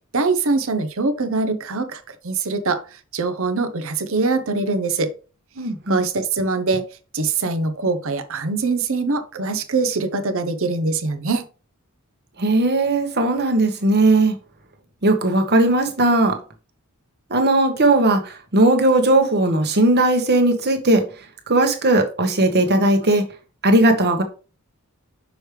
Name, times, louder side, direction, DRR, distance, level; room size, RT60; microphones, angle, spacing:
voice 1, 0.1-5.1 5.9-6.8 7.1-11.4, right 3 dB, 65° right, 0.8 m, -23 dB
voice 2, 5.6-6.1 12.4-14.3 15.0-16.4 17.3-21.0 21.5-23.2 23.6-24.2, right 2 dB, 50° right, 1.1 m, -17 dB
6.3 x 4.8 x 3.3 m
head